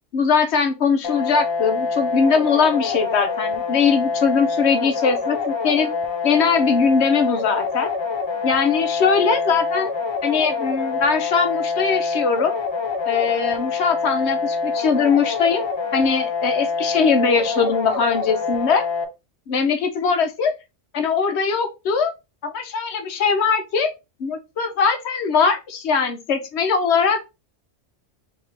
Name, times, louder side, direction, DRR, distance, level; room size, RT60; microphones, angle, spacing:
voice 1, 0.1-5.9 6.2-7.9 8.4-9.9 10.2-12.6 13.1-15.6 15.9-18.8 19.5-20.5 20.9-22.1 22.4-23.9 24.2-27.3, left 5 dB, 65° left, 1.0 m, -21 dB
sound 1, 1.0-19.0, left 4 dB, 35° left, 0.5 m, -25 dB
3.5 x 2.9 x 3.8 m
omnidirectional pair, 1.2 m